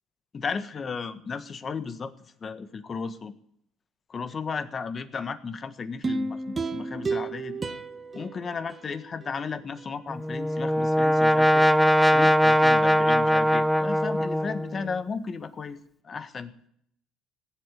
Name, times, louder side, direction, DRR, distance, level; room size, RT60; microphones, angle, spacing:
voice 1, 0.3-3.3 4.1-7.7 8.1-11.7 12.1-16.7, left 5 dB, 35° left, 11 dB, 1.5 m, -35 dB
sound 1, 6.0-9.3 9.8-9.9, right 3 dB, 25° right, 1.2 m, -32 dB
Brass instrument, 10.1-14.9, equal, ahead, 0.6 m, -21 dB
18.0 x 8.2 x 9.0 m, 0.69 s
cardioid pair, 100°, 0 cm